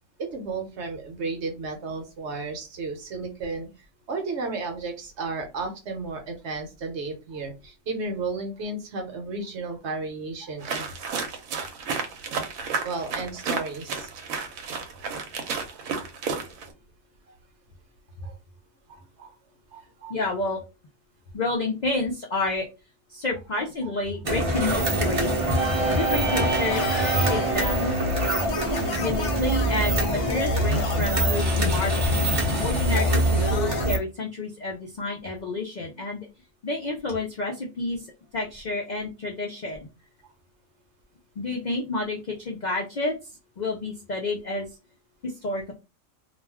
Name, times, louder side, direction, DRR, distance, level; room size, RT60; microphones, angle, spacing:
voice 1, 0.2-3.7 4.1-10.9 12.8-14.1 16.0-16.1 18.2-18.4 18.9-19.4 19.7-20.2 28.3-28.7 40.2-40.3, right 3 dB, 60° right, 4 dB, 0.9 m, -33 dB
sound 1, 10.6-16.7, right 5 dB, 85° right, 1.0 m, -32 dB
voice 2, 20.1-20.6 21.3-22.7 23.1-25.3 26.0-27.9 29.0-32.1 32.6-36.3 36.6-38.1 38.3-39.9 41.4-43.1 43.6-44.7 45.2-45.7, left 2 dB, 85° left, 1 dB, 0.4 m, -29 dB
sound 2, 24.2-34.0, right 1 dB, 35° right, 0.5 m, -24 dB
sound 3, 26.7-33.9, left 4 dB, 65° left, 0.9 m, -32 dB
2.4 x 2.2 x 3.3 m, 0.28 s
omnidirectional pair, 1.4 m